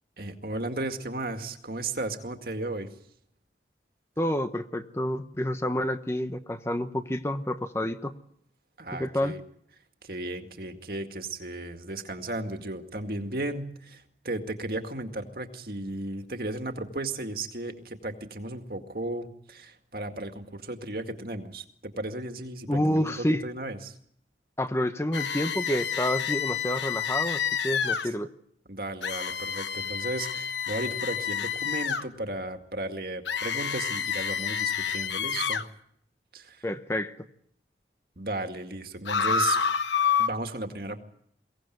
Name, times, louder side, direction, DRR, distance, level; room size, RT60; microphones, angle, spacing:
voice 1, 0.2-2.9 8.8-9.4 10.0-23.9 28.0-28.1 28.7-35.6 36.3-36.6 38.2-39.6 40.2-41.0, right 2 dB, 55° right, 6 dB, 2.1 m, -35 dB
voice 2, 4.2-8.1 8.9-9.3 22.7-23.4 24.6-28.3 36.6-37.1, left 1 dB, 15° left, 9 dB, 0.9 m, -28 dB
sound 1, 25.1-28.1 29.0-32.0 33.3-35.7 39.1-40.3, left 7 dB, 90° left, 1.2 m, -28 dB
23.0 x 17.5 x 9.3 m, 0.69 s
head